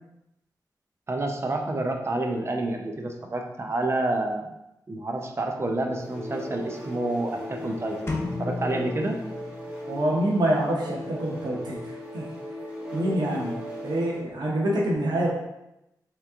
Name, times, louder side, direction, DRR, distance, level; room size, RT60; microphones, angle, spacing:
voice 1, 1.1-4.5 4.9-9.2, right 2 dB, 40° right, 2 dB, 0.5 m, -29 dB
sound 1, 5.9-14.3, equal, 15° right, 1.1 m, -38 dB
sound 2, 8.1-10.0, left 3 dB, 35° left, 0.7 m, -33 dB
voice 2, 9.9-12.3 12.9-13.5 13.8-15.3, right 1 dB, 90° right, -3 dB, 0.8 m, -26 dB
3.5 x 3.0 x 3.4 m, 0.88 s
wide cardioid pair, 110°, 7 cm